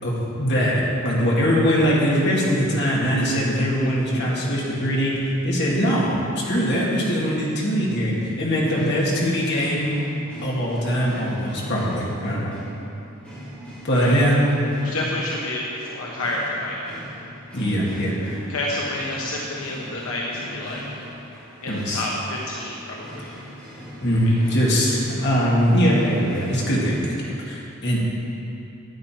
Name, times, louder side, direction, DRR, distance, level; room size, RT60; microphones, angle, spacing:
voice 1, 0.0-5.2 5.4-9.9 10.4-12.5 13.8-14.4 17.5-18.4 21.7-22.1 24.0-28.0, equal, 55° left, -5 dB, 2.4 m, -22 dB
sound 1, 8.6-27.0, equal, 5° left, 3.0 m, -40 dB
voice 2, 14.8-16.8 18.5-20.8 21.6-23.3 24.2-24.3, left 1 dB, 90° left, -3 dB, 1.2 m, -29 dB
12.5 x 9.2 x 4.6 m, 2.9 s
head